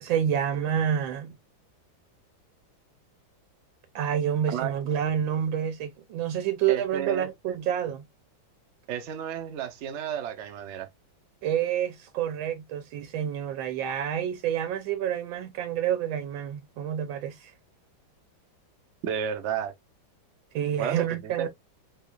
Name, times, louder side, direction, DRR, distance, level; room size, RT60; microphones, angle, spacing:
voice 1, 0.0-1.4 3.9-8.1 11.4-17.5 20.5-21.5, right 9 dB, 85° right, 1.4 m, -28 dB
voice 2, 6.7-7.3 8.9-10.9 19.0-19.7 20.8-21.5, right 9 dB, 70° right, 0.7 m, -32 dB
3.7 x 3.6 x 2.2 m
omnidirectional pair, 2.1 m